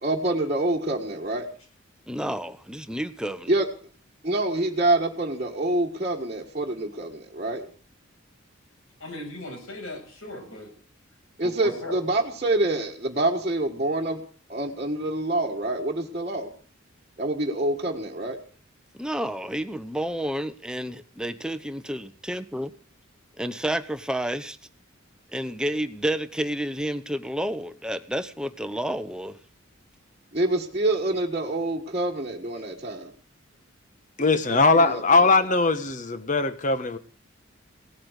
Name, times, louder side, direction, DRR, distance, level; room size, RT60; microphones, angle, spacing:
voice 1, 0.0-1.5 3.5-3.7 4.2-7.7 11.4-14.2 14.5-16.5 17.2-18.4 30.3-33.1 34.5-35.2, right 2 dB, 30° right, 1.6 m, -26 dB
voice 2, 2.1-3.5 18.9-22.7 23.4-24.6 25.3-29.4, right 1 dB, 5° right, 0.9 m, -30 dB
voice 3, 9.0-10.7 11.4-12.0, left 1 dB, 85° left, 7.9 m, -37 dB
voice 4, 34.2-37.0, left 3 dB, 35° left, 1.2 m, -20 dB
18.0 x 8.7 x 8.1 m
head